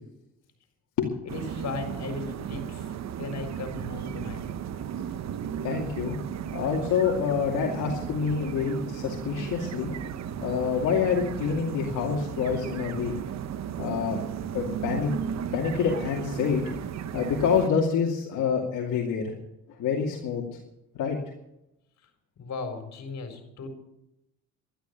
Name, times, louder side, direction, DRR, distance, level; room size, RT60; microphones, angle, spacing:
voice 1, 1.2-2.9 3.2-4.4 22.4-23.7, left 4 dB, 60° left, 6 dB, 4.3 m, -36 dB
sound 1, 1.3-17.7, right 9 dB, 60° right, 1.0 m, -35 dB
voice 2, 5.6-6.1 6.5-9.9 10.4-13.2 13.8-14.2 14.5-15.1 15.5-16.6 17.1-19.3 19.8-20.4 20.9-21.2, left 6 dB, 80° left, -1 dB, 2.5 m, -27 dB
12.5 x 12.0 x 6.9 m, 0.85 s
cardioid pair, 90°, 30 cm